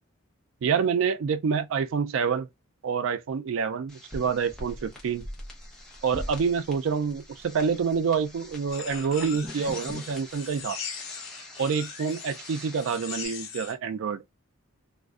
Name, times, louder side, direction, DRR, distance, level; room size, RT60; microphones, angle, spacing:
voice 1, 0.6-2.5 2.8-5.3 6.0-10.8 11.6-14.2, right 6 dB, 65° right, 0.3 m, -27 dB
sound 1, 3.9-13.3, left 1 dB, 5° left, 0.7 m, -43 dB
sound 2, 8.7-13.7, left 6 dB, 75° left, 0.8 m, -40 dB
2.4 x 2.2 x 2.3 m
head